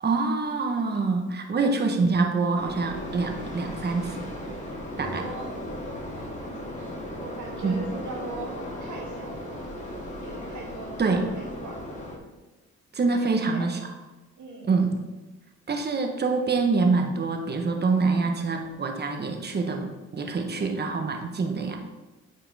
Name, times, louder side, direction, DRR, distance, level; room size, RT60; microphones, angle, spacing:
voice 1, 0.0-4.2 4.5-4.6 5.0-5.2 7.6-7.8 11.0-11.3 12.9-13.8 14.7-15.0 15.7-21.8, right 4 dB, 35° right, 3 dB, 1.2 m, -25 dB
sound 1, 2.5-12.2, left 1 dB, 25° left, 2.1 m, -36 dB
voice 2, 5.2-5.6 6.1-6.9 7.2-9.6 10.2-11.9 13.1-13.7 14.4-14.8, right 3 dB, 70° right, -3 dB, 2.6 m, -41 dB
9.0 x 5.8 x 3.5 m, 1.1 s
cardioid pair, 90°, 30 cm